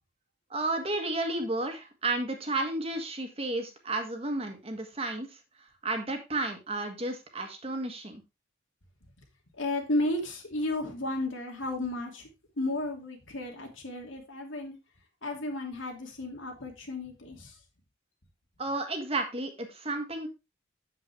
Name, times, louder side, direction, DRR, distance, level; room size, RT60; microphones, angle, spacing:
voice 1, 0.5-8.2 18.6-20.3, right 2 dB, 30° right, 5 dB, 1.6 m, -32 dB
voice 2, 9.6-12.3 12.6-14.8 15.2-17.5, left 1 dB, 90° left, 2 dB, 2.8 m, -33 dB
8.3 x 7.8 x 3.5 m, 0.25 s
head